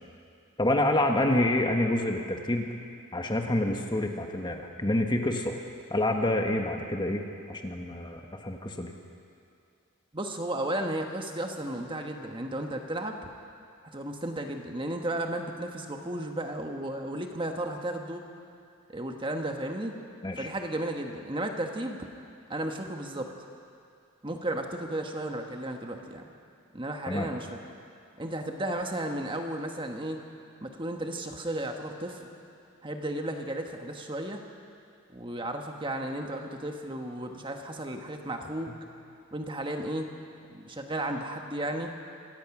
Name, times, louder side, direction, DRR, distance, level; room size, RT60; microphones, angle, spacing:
voice 1, 0.6-2.7 3.1-5.6 5.9-8.9 20.2-20.5 27.1-27.3, left 1 dB, 20° left, 3 dB, 1.3 m, -27 dB
voice 2, 10.1-13.2 13.9-18.2 18.9-19.9 20.4-22.1 22.5-23.3 24.2-26.2 26.7-27.6 28.2-30.2 30.6-32.4 32.8-34.4 35.1-38.7 39.3-40.1 40.5-41.9, right 1 dB, 25° right, 3 dB, 1.3 m, -34 dB
25.0 x 17.5 x 6.1 m, 2.4 s
head